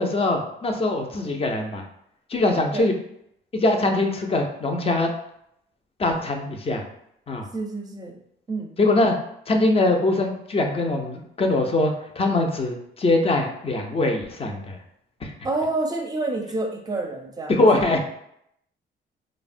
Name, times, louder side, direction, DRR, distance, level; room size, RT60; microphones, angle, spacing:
voice 1, 0.0-1.8 2.3-2.9 3.5-5.1 6.0-6.8 7.3-7.5 8.8-9.2 9.5-14.8 15.2-15.3 17.5-18.0, left 2 dB, 30° left, 3 dB, 0.5 m, -22 dB
voice 2, 7.5-8.2 8.5-8.7 15.4-17.6, right 2 dB, 20° right, 3 dB, 0.5 m, -28 dB
3.2 x 2.1 x 2.5 m, 0.74 s
cardioid pair, 90°, 20 cm